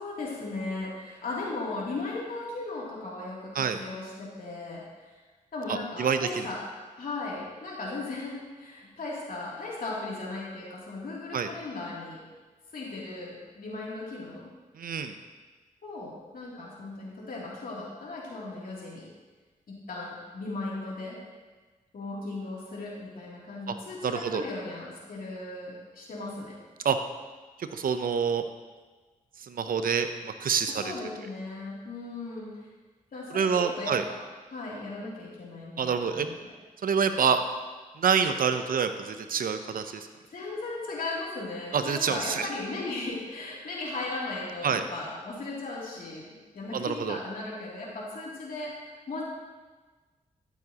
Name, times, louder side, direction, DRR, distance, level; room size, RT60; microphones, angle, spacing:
voice 1, 0.0-5.2 5.5-6.6 7.0-12.2 12.7-14.5 15.8-19.1 19.7-21.2 21.9-26.6 30.7-32.7 33.1-34.2 34.5-36.5 40.3-46.3 46.5-49.2, left 2 dB, 70° left, -5 dB, 2.9 m, -37 dB
voice 2, 5.7-6.5 11.3-11.5 14.8-15.1 24.0-24.4 26.8-27.0 27.6-28.4 29.5-30.8 33.3-34.0 35.8-36.3 36.8-37.4 38.0-40.1 41.7-42.5 44.6-44.8 46.7-47.2, right 6 dB, 70° right, 9 dB, 0.7 m, -27 dB
13.5 x 7.1 x 2.9 m, 1.3 s
cardioid pair, 55°, 15 cm